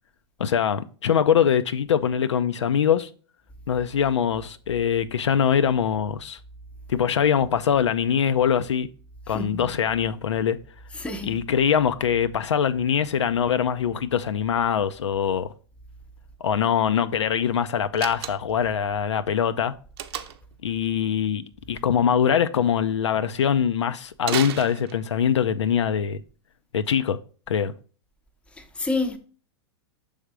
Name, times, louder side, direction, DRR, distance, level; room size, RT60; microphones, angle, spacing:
voice 1, 0.4-3.1 3.7-6.4 6.9-8.9 9.3-10.6 11.2-15.5 16.4-19.7 20.6-26.2 26.7-27.2 27.5-27.7, left 8 dB, 85° left, 0.5 m, -23 dB
voice 2, 9.3-9.8 10.9-11.4 28.6-29.2, left 2 dB, 10° left, 0.7 m, -29 dB
Slam, 17.9-18.7 20.0-20.5 24.2-25.3, right 9 dB, 60° right, 0.7 m, -33 dB
6.3 x 3.4 x 4.8 m
hypercardioid pair, 115°, 15 cm